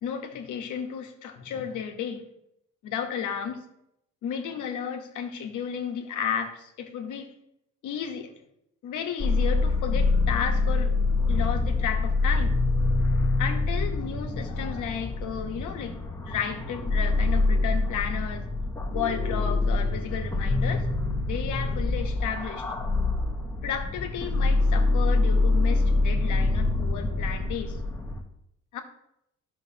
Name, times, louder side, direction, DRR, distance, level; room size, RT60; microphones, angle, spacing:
voice 1, 0.0-2.2 2.8-3.6 4.2-7.3 7.8-8.3 8.8-11.0 11.3-12.5 13.4-16.0 16.2-18.5 18.9-20.9 21.2-22.7 23.6-27.8 28.7-28.8, left 8 dB, 80° left, 5 dB, 1.1 m, -33 dB
sound 1, 9.2-28.2, left 3 dB, 10° left, 1.2 m, -25 dB
11.5 x 6.2 x 2.8 m, 0.78 s
cardioid pair, 90°, 30 cm